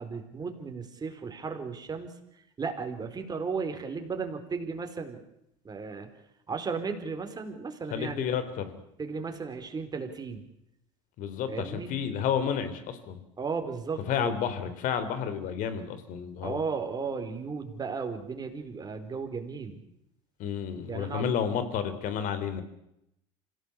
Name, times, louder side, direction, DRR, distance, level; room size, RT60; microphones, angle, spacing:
voice 1, 0.0-5.2 5.6-6.1 6.5-8.2 9.0-10.5 11.5-11.9 13.4-14.3 16.4-19.8 20.9-21.3, right 5 dB, 25° right, 5 dB, 4.6 m, -35 dB
voice 2, 7.9-8.7 11.2-13.2 14.1-16.6 20.4-22.6, left 8 dB, 60° left, 11 dB, 3.8 m, -31 dB
26.0 x 17.0 x 8.4 m, 0.80 s
hypercardioid pair, 85°, 16 cm